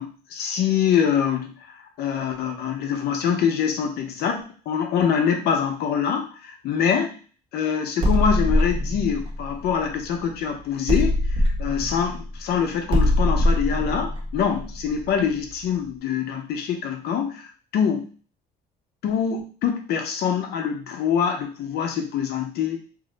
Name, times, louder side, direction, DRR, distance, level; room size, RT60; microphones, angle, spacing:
voice 1, 0.0-7.2 7.5-11.2 11.6-18.1 19.0-22.8, left 7 dB, 70° left, 4 dB, 0.7 m, -24 dB
sound 1, 8.0-10.4 10.9-15.5, left 1 dB, 30° right, 0.8 m, -23 dB
2.7 x 2.1 x 3.8 m, 0.39 s
cardioid pair, 110°, 17 cm